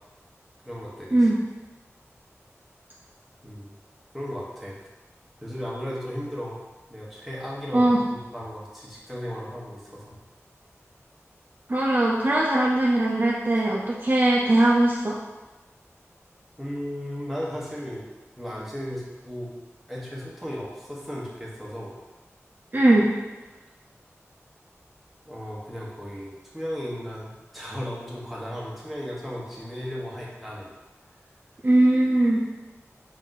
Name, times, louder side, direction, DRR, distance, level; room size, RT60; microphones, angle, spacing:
voice 1, 0.6-1.3 3.4-3.7 4.1-4.8 5.4-6.6 6.9-10.2 16.6-18.1 18.4-19.5 19.9-22.0 25.2-30.7, equal, ahead, -6 dB, 1.0 m, -35 dB
voice 2, 11.7-15.2 22.7-23.1 31.6-32.4, right 1 dB, 40° right, -4 dB, 0.5 m, -20 dB
3.8 x 2.6 x 3.8 m, 1.2 s
wide cardioid pair, 60°, 5 cm